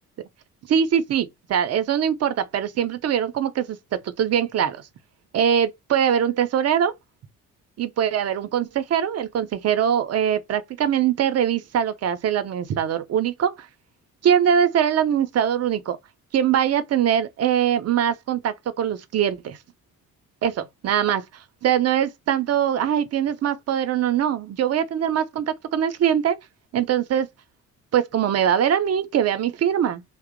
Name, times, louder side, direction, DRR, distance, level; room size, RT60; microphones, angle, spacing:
voice 1, 0.7-4.8 5.3-6.9 7.8-13.5 14.2-16.0 16.3-19.6 20.4-21.2 21.6-25.5 25.7-26.4 26.7-27.3 27.9-30.0, right 9 dB, 35° right, 0.7 m, -22 dB
2.8 x 2.1 x 3.7 m
figure-of-eight pair, 50°, 44 cm